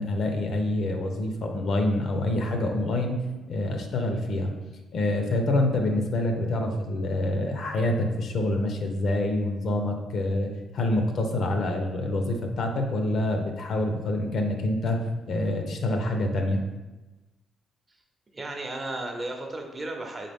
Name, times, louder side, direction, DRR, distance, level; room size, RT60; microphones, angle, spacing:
voice 1, 0.0-3.2 3.5-4.5 4.9-16.6, left 1 dB, 65° left, 4 dB, 0.7 m, -26 dB
voice 2, 18.3-20.3, right 2 dB, 30° right, 3 dB, 0.7 m, -34 dB
4.0 x 3.6 x 3.5 m, 1.1 s
cardioid pair, 90°, 0 cm